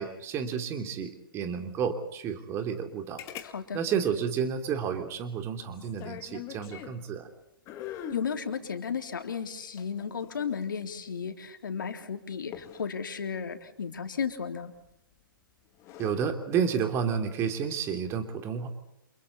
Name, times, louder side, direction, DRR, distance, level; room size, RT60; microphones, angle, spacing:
voice 1, 0.0-3.2 3.7-7.3 16.0-18.7, right 7 dB, 20° right, 6 dB, 3.1 m, -31 dB
sound 1, 3.2-3.5 3.8-3.9 5.7-7.0 7.7-8.3 9.6-10.8 12.5-12.9 14.8-15.1 15.7-16.2 17.5-17.8, left 11 dB, 25° left, 2.1 m, -42 dB
voice 2, 3.4-3.8 8.1-14.7, left 6 dB, 65° left, 6 dB, 3.5 m, -34 dB
29.5 x 28.5 x 4.2 m, 0.81 s
figure-of-eight pair, 125°, 12 cm